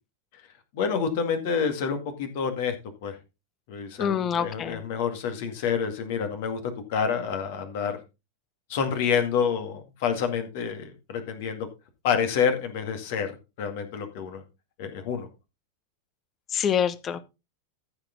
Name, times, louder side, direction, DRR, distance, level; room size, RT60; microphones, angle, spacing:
voice 1, 0.7-2.7 3.0-3.2 3.7-7.9 8.7-11.7 12.0-14.4 14.8-15.3, left 6 dB, 50° left, 2.1 m, -28 dB
voice 2, 4.0-4.8 16.5-17.2, left 8 dB, 25° left, 1.0 m, -26 dB
14.0 x 6.1 x 3.9 m
figure-of-eight pair, 90°, 0 cm